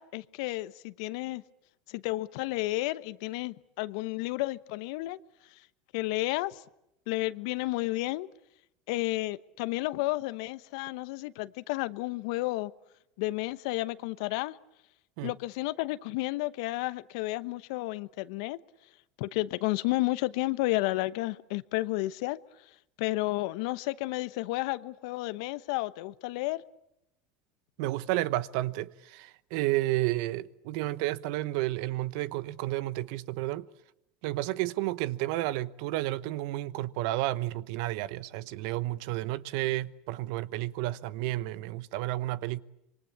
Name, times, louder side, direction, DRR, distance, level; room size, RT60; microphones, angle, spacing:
voice 1, 0.0-1.4 1.9-5.2 5.9-6.6 7.1-8.3 8.9-12.7 13.2-14.6 15.2-18.6 19.2-22.4 23.0-26.6, left 19 dB, 70° left, 1.0 m, -32 dB
voice 2, 27.8-33.7 34.2-42.6, right 17 dB, 70° right, 1.0 m, -31 dB
26.0 x 23.5 x 8.5 m
hypercardioid pair, 95°, 3 cm